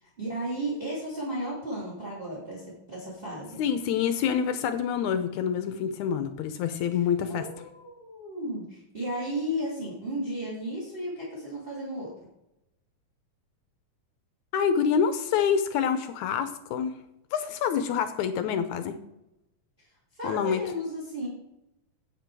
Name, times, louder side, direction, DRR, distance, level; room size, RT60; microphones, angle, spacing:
voice 1, 0.0-3.6 6.9-7.0 7.3-12.1 20.1-21.3, right 1 dB, 20° right, -4 dB, 2.3 m, -34 dB
voice 2, 3.6-7.4 14.5-17.0 17.3-19.0 20.2-20.6, left 7 dB, 75° left, 9 dB, 1.8 m, -27 dB
9.1 x 8.0 x 4.7 m, 0.88 s
omnidirectional pair, 3.9 m